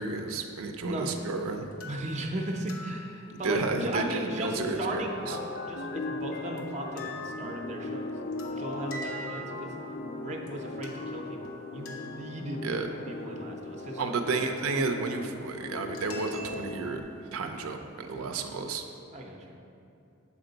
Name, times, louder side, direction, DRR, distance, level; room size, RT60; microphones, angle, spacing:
voice 1, 0.0-1.7 3.3-5.4 12.6-12.9 14.0-17.0 17.3-18.8, right 3 dB, 85° right, 5 dB, 0.5 m, -32 dB
sound 1, 1.1-1.2 1.7-3.6 6.6-6.7 7.0-10.1 10.5-10.6 10.8-12.5 15.9-17.2, equal, 75° left, 0.8 m, -45 dB
voice 2, 1.9-8.1 8.5-9.7 10.1-12.6 12.9-14.1 19.1-19.6, right 1 dB, 35° right, 2 dB, 0.5 m, -37 dB
sound 2, 3.8-17.0, left 2 dB, 50° left, 0.4 m, -39 dB
7.2 x 4.4 x 3.9 m, 2.7 s
head